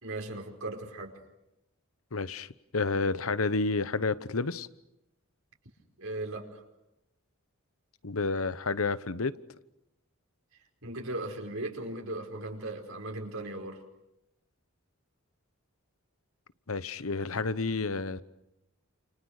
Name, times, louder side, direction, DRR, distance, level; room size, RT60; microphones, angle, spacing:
voice 1, 0.0-1.2 6.0-6.6 10.8-13.8, right 2 dB, 70° right, 2 dB, 5.0 m, -37 dB
voice 2, 2.1-2.5 2.7-4.7 8.0-9.3 16.7-18.2, left 3 dB, 75° left, 15 dB, 1.0 m, -30 dB
30.0 x 28.5 x 6.6 m, 0.89 s
head